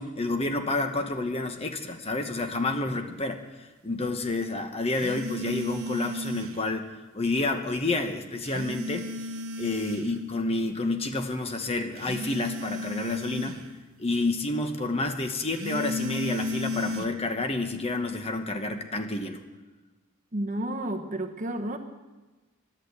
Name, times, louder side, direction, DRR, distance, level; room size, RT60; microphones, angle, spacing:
voice 1, 0.0-6.9 7.1-9.1 9.6-13.6 14.0-19.4, left 2 dB, 25° left, 6 dB, 1.0 m, -29 dB
sound 1, 4.9-6.7 8.4-10.2 12.0-13.7 15.5-17.1, left 1 dB, 65° right, 1.1 m, -34 dB
voice 2, 20.3-21.8, right 1 dB, 35° right, 5 dB, 1.1 m, -31 dB
12.5 x 11.0 x 8.1 m, 1.2 s
head